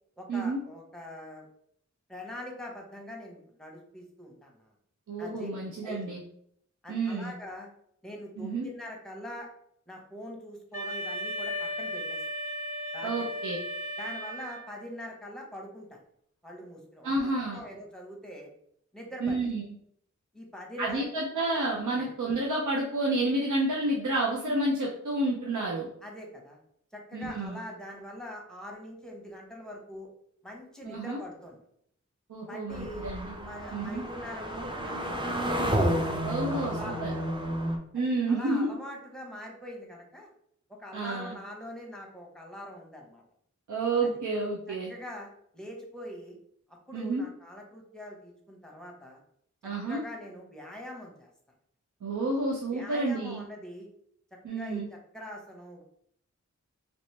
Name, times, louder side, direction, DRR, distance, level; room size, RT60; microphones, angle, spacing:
voice 1, 0.2-1.4 2.1-4.7 5.2-5.5 5.8-6.1 6.8-7.7 8.0-9.5 9.9-12.2 12.9-13.3 14.0-16.0 16.4-17.1 17.5-18.5 18.9-19.4 20.3-21.1 22.0-22.1 26.0-26.6 26.9-30.1 30.4-31.6 32.5-33.1 33.5-35.4 36.1-37.2 37.9-40.3 40.8-43.2 44.0-44.1 44.7-46.4 46.9-49.2 49.9-51.3 52.7-53.9 54.5-55.8, left 1 dB, ahead, 0 dB, 0.9 m, -43 dB
voice 2, 5.1-6.2 6.9-7.3 8.4-8.7 13.0-13.6 17.0-17.6 19.2-19.6 20.8-25.9 27.1-27.6 30.9-31.2 32.3-33.3 33.7-34.0 36.3-37.1 37.9-38.7 40.9-41.3 43.7-44.9 46.9-47.2 49.6-50.0 52.0-53.4 54.4-54.9, right 2 dB, 85° right, -2 dB, 0.6 m, -30 dB
Wind instrument woodwind instrument, 10.7-14.9, equal, 55° right, 1.1 m, -35 dB
sound 1, 32.7-37.8, equal, 15° right, 0.5 m, -31 dB
3.0 x 3.0 x 3.2 m, 0.68 s
wide cardioid pair, 65°, 30 cm